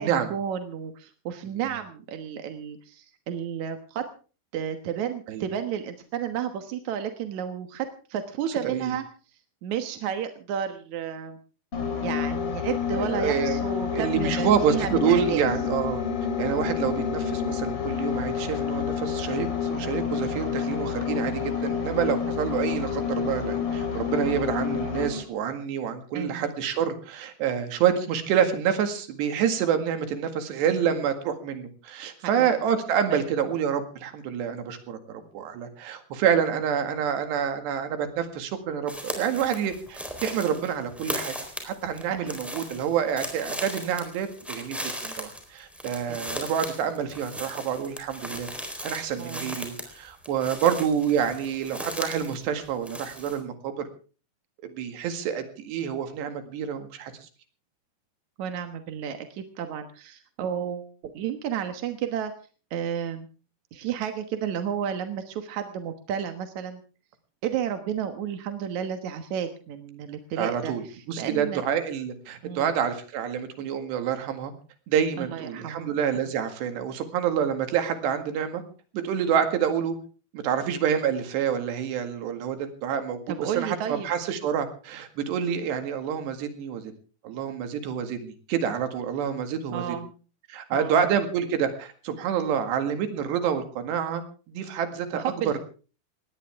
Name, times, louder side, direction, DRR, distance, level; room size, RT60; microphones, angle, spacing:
voice 1, 0.0-4.0 4.5-9.0 9.6-11.4 12.0-15.5 26.1-26.5 32.4-32.5 33.1-33.2 42.2-42.4 46.1-46.3 49.2-49.5 58.4-62.3 62.7-63.3 63.7-66.8 67.4-71.6 72.4-72.7 75.2-76.0 83.3-84.1 89.7-90.1 90.7-91.0 95.1-95.6, right 8 dB, 65° right, 7 dB, 2.0 m, -32 dB
sound 1, 11.7-25.2, left 7 dB, 35° left, 3.4 m, -29 dB
voice 2, 12.9-13.6 13.9-16.0 16.4-41.4 41.6-48.5 48.8-53.7 54.6-57.3 70.4-70.8 71.1-74.5 74.9-78.6 78.9-80.0 80.3-86.8 87.2-90.0 90.5-95.6, right 8 dB, 80° right, 7 dB, 4.1 m, -27 dB
sound 2, 38.9-52.4 52.6-53.4, equal, ahead, 3.3 m, -37 dB
20.0 x 18.0 x 3.6 m, 0.37 s
omnidirectional pair, 4.9 m